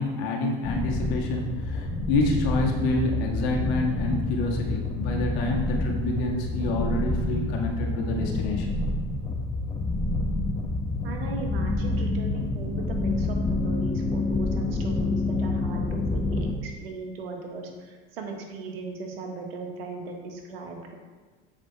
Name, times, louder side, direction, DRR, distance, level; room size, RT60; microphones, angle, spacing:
voice 1, 0.0-8.8, left 2 dB, 70° left, 0 dB, 1.7 m, -28 dB
sound 1, 0.6-16.5, left 2 dB, 20° left, 1.0 m, -28 dB
voice 2, 11.0-20.9, right 4 dB, 85° right, 2 dB, 1.5 m, -38 dB
7.3 x 5.1 x 4.6 m, 1.4 s
hypercardioid pair, 95°, 29 cm